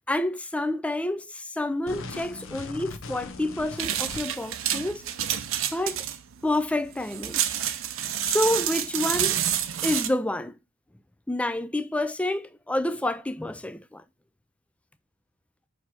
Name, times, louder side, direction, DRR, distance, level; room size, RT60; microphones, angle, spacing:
voice 1, 0.0-5.1 5.7-6.0 6.4-7.4 8.2-9.4 9.8-10.6 11.3-14.0, left 1 dB, 5° left, 0.3 m, -28 dB
sound 1, 1.9-4.5, left 3 dB, 65° left, 0.8 m, -39 dB
sound 2, 3.8-10.1, right 10 dB, 65° right, 0.6 m, -28 dB
6.2 x 3.3 x 5.8 m
head